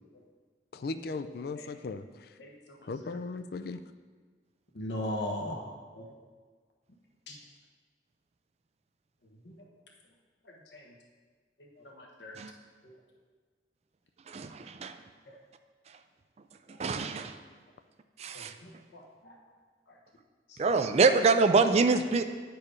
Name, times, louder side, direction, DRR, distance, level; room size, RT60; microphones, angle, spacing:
voice 1, 0.7-2.0 2.9-3.8, left 3 dB, 60° left, 10 dB, 0.4 m, -37 dB
voice 2, 2.4-2.8 3.0-3.1 4.7-5.6 6.0-6.1 7.3-7.4 9.4-9.6 10.7-10.9 11.6-11.7 12.0-12.4 12.8-12.9 18.3-19.4 20.5-20.6, left 1 dB, 75° left, -1 dB, 1.1 m, -39 dB
voice 3, 14.3-14.9 16.8-17.3 18.2-18.5 20.6-22.2, right 4 dB, 35° right, 8 dB, 0.3 m, -25 dB
9.6 x 4.6 x 5.0 m, 1.5 s
head